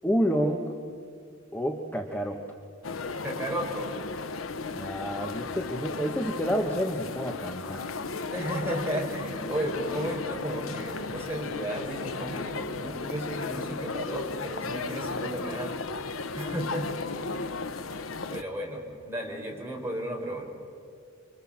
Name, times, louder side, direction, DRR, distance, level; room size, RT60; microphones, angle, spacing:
voice 1, 0.0-0.7 1.5-2.4 4.7-7.9, equal, 10° left, 2 dB, 1.3 m, -29 dB
sound 1, 2.8-18.4, left 3 dB, 75° left, 0.9 m, -35 dB
voice 2, 3.2-4.0 8.3-15.8 16.3-16.9 17.4-17.6 18.3-20.5, right 1 dB, 10° right, -2 dB, 5.0 m, -34 dB
29.5 x 24.5 x 7.4 m, 2.2 s
head